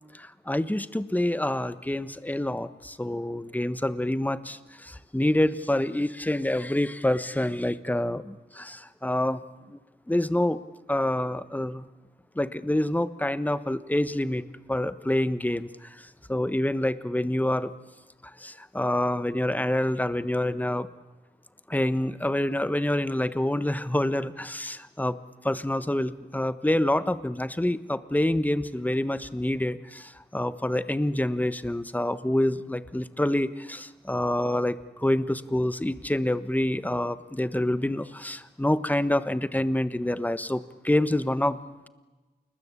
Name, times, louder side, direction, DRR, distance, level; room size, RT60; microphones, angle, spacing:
voice 1, 0.1-9.4 9.7-9.8 10.1-10.6 10.9-11.8 12.4-14.4 14.7-17.7 18.4-20.9 21.7-25.2 25.4-41.6, left 1 dB, 10° left, 13 dB, 1.2 m, -27 dB
29.0 x 20.5 x 8.4 m, 1.2 s
wide cardioid pair, 70°, 18 cm